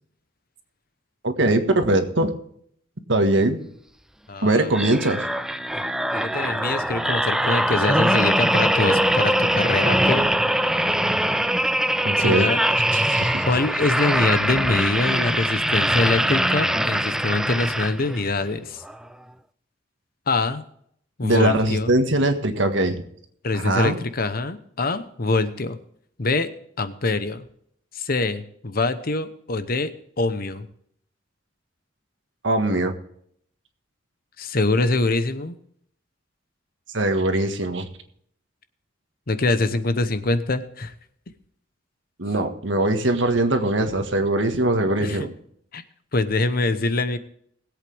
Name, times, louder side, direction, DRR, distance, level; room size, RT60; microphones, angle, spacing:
voice 1, 1.2-2.3 3.1-3.6 4.4-5.3 12.0-12.5 12.9-13.4 21.2-23.0 23.5-24.0 32.4-32.9 36.9-37.9 42.2-45.3, right 1 dB, 75° right, 6 dB, 1.6 m, -21 dB
voice 2, 4.3-4.7 5.7-5.8 6.1-10.3 12.2-12.6 13.5-18.8 20.3-20.6 21.2-22.0 23.4-25.8 26.2-26.5 26.8-27.5 27.9-30.7 34.4-35.5 39.3-40.9 45.0-45.3 45.7-45.8 46.1-47.2, left 3 dB, 50° left, 11 dB, 0.9 m, -24 dB
sound 1, 4.7-18.3 18.8-19.0, right 1 dB, 5° right, 0.4 m, -22 dB
21.0 x 8.3 x 3.5 m, 0.67 s
head